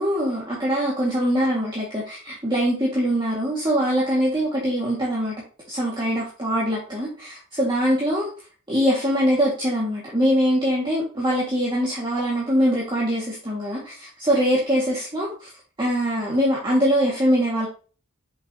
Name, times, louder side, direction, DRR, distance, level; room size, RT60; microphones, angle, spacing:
voice 1, 0.0-5.4 5.7-8.3 8.7-15.5 15.8-17.7, equal, 20° right, -6 dB, 1.9 m, -23 dB
7.2 x 5.6 x 2.9 m, 0.37 s
head